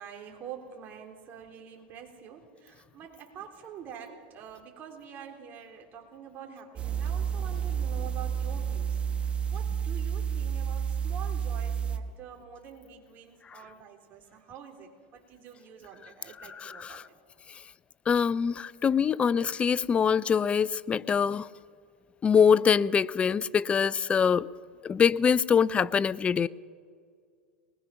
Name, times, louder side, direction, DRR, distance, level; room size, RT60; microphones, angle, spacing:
voice 1, 0.0-9.0 9.5-17.0, right 8 dB, 40° right, 2 dB, 3.8 m, -46 dB
sound 1, 6.8-12.0, right 7 dB, 25° right, 1.4 m, -30 dB
voice 2, 16.6-17.0 18.1-21.5 22.2-24.5 24.8-26.5, left 7 dB, 25° left, 19 dB, 0.5 m, -24 dB
22.5 x 20.5 x 6.0 m, 2.1 s
hypercardioid pair, 105°, 5 cm